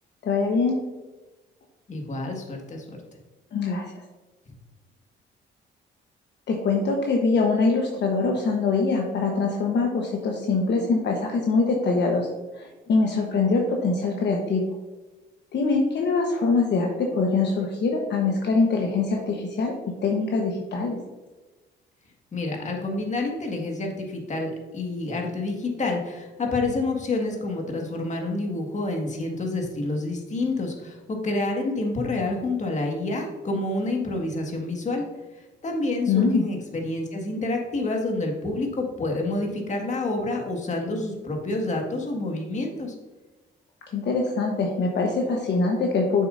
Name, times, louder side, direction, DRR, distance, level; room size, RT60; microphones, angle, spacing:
voice 1, 0.2-0.8 3.5-4.0 6.5-12.3 12.5-14.6 15.5-19.7 20.0-21.0 36.1-36.5 43.9-46.3, left 4 dB, 60° left, 1 dB, 1.1 m, -23 dB
voice 2, 1.9-3.0 22.3-35.1 35.6-42.9, left 2 dB, 35° left, 1 dB, 1.8 m, -28 dB
7.7 x 6.5 x 2.6 m, 1.2 s
cardioid pair, 90°, 20 cm